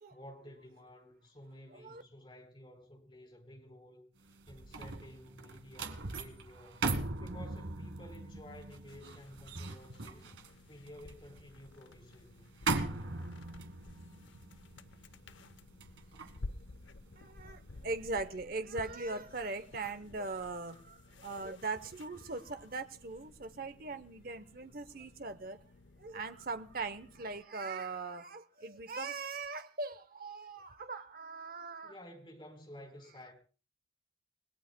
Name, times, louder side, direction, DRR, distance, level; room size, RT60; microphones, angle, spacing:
voice 1, 0.1-4.0 4.5-6.9 7.2-10.3 10.7-12.4 31.8-33.3, equal, 25° left, 4.1 m, -53 dB
voice 2, 1.7-2.0 17.2-25.6 26.0-31.9, right 3 dB, 50° right, 0.8 m, -40 dB
sound 1, 4.2-17.6 18.0-18.2, right 3 dB, 85° right, 1.7 m, -40 dB
sound 2, 8.9-27.4, left 2 dB, 80° left, 0.8 m, -53 dB
29.5 x 18.0 x 2.2 m
head